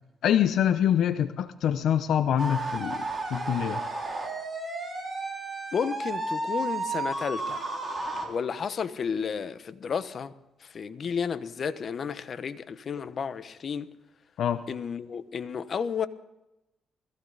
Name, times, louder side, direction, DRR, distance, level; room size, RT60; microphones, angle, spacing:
voice 1, 0.2-3.8 14.4-14.7, left 9 dB, 75° left, 0.7 m, -25 dB
sound 1, 2.4-8.3, right 2 dB, 20° right, 4.7 m, -32 dB
voice 2, 5.7-7.6 8.2-10.3 10.6-13.9 14.7-16.1, left 6 dB, 50° left, 1.0 m, -32 dB
21.0 x 15.0 x 4.1 m
cardioid pair, 90°, 0 cm